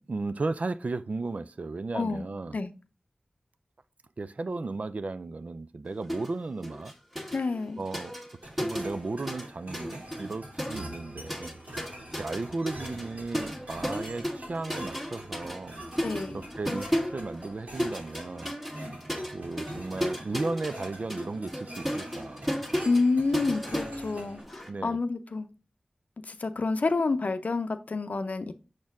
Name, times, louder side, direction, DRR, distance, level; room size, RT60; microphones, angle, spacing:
voice 1, 0.1-2.6 4.2-6.9 7.8-8.2 8.4-11.6 12.2-15.8 16.3-18.6 19.3-22.5 24.7-25.0, right 3 dB, 60° right, 0.4 m, -35 dB
voice 2, 1.9-2.3 2.5-2.7 7.3-7.8 16.0-16.4 22.8-25.5 26.3-28.5, left 3 dB, 70° left, 0.6 m, -28 dB
sound 1, 6.1-6.3 6.6-9.5 9.7-24.7, equal, 5° right, 1.4 m, -35 dB
sound 2, 8.4-24.4, right 1 dB, 75° right, 2.9 m, -45 dB
6.2 x 4.4 x 3.5 m
wide cardioid pair, 50°, 3 cm